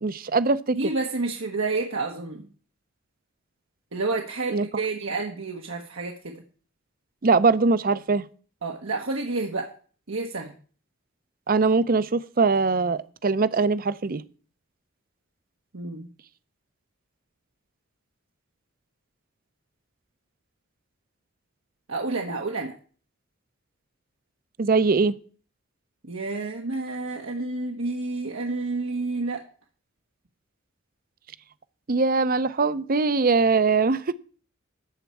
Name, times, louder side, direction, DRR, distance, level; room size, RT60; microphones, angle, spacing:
voice 1, 0.0-0.8 4.5-4.7 7.2-8.2 11.5-14.2 24.6-25.1 31.9-34.0, right 4 dB, 45° right, 0.6 m, -22 dB
voice 2, 0.7-2.5 3.9-6.3 8.6-9.7 10.1-10.5 15.7-16.1 21.9-22.7 26.0-29.4, right 3 dB, 80° right, 1.3 m, -29 dB
13.0 x 4.5 x 8.4 m
head